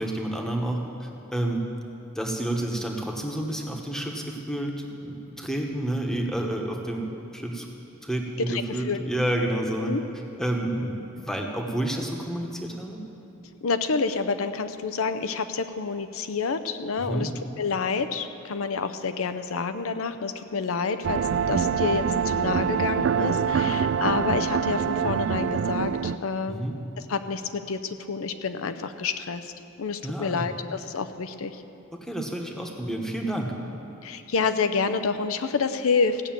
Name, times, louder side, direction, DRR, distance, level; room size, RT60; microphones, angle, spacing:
voice 1, 0.0-1.6 2.1-7.1 7.3-7.7 8.0-9.9 10.4-13.0 17.0-17.3 26.4-26.8 30.0-30.4 32.0-33.5, right 1 dB, ahead, 1 dB, 1.2 m, -29 dB
voice 2, 8.5-9.0 9.8-10.0 13.6-17.3 17.6-21.2 21.5-26.6 27.1-29.5 29.8-31.6 34.0-36.2, left 5 dB, 75° left, 9 dB, 0.6 m, -28 dB
sound 1, 21.0-26.2, right 7 dB, 60° right, 0.3 m, -25 dB
16.0 x 6.8 x 8.9 m, 2.8 s
head